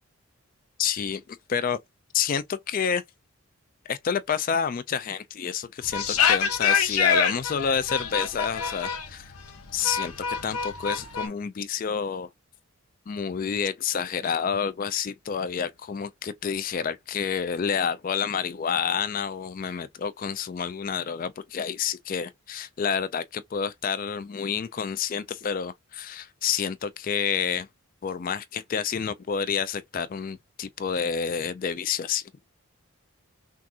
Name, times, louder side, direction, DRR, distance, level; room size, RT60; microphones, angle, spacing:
voice 1, 0.8-1.8 2.1-3.0 3.9-9.3 9.7-10.1 10.4-12.3 13.1-27.7 28.0-32.3, left 7 dB, 40° left, 0.3 m, -29 dB
sound 1, 5.8-11.3, left 6 dB, 90° left, 1.0 m, -26 dB
5.9 x 2.5 x 2.7 m
head